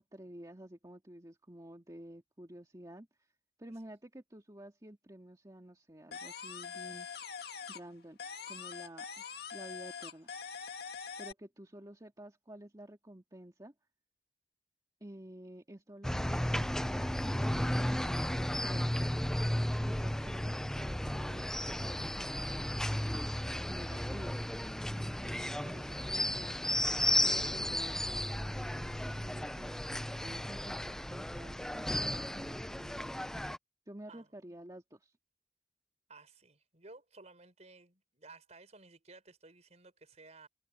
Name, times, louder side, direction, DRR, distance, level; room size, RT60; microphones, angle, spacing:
voice 1, 0.0-3.3 3.6-7.1 7.7-8.2 8.5-9.3 9.5-10.3 11.2-13.7 15.0-21.5 21.8-24.4 25.0-26.6 27.1-33.3 33.9-35.1, right 1 dB, 20° right, 2.1 m, -51 dB
sound 1, 6.1-7.9 8.2-11.3, left 6 dB, 65° left, 2.0 m, -44 dB
sound 2, 16.0-33.6, left 1 dB, 5° left, 0.4 m, -34 dB
voice 2, 34.1-34.5 36.1-40.5, right 3 dB, 40° right, 4.6 m, -56 dB
head